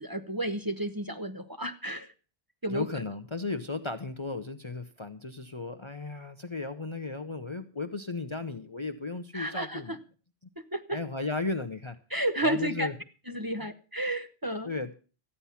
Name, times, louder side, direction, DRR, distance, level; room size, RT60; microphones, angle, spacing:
voice 1, 0.0-2.1 2.6-2.9 9.3-10.0 10.6-11.0 12.1-12.9 13.3-14.7, right 1 dB, 20° right, 8 dB, 1.0 m, -32 dB
voice 2, 2.7-10.0 10.9-12.0 12.4-12.9 13.6-13.7 14.6-14.9, left 3 dB, 30° left, 9 dB, 0.8 m, -35 dB
14.0 x 9.9 x 5.7 m, 0.36 s
omnidirectional pair, 1.1 m